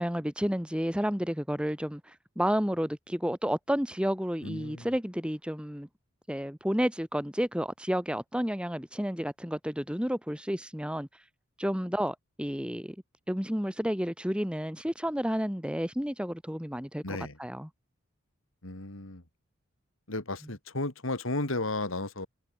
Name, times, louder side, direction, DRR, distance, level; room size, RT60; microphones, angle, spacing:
voice 1, 0.0-5.9 6.3-11.1 11.6-13.0 13.3-17.7, equal, 5° right, 4.0 m, -31 dB
voice 2, 4.4-4.9 17.0-17.4 18.6-19.2 20.1-22.3, left 2 dB, 70° left, 3.4 m, -34 dB
head